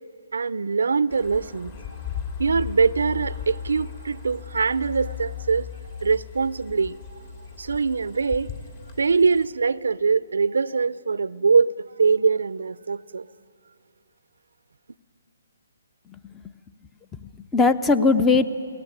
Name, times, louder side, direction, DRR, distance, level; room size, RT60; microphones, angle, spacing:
voice 1, 0.3-1.7 2.4-5.7 6.0-7.0 7.6-8.5 9.0-11.7 12.0-13.3, right 5 dB, 80° right, 0.5 m, -22 dB
sound 1, 1.1-9.4, left 8 dB, 40° left, 2.7 m, -37 dB
voice 2, 16.1-16.4 17.2-18.5, left 4 dB, 10° left, 0.6 m, -20 dB
21.5 x 18.0 x 9.9 m
hypercardioid pair, 150°, 0 cm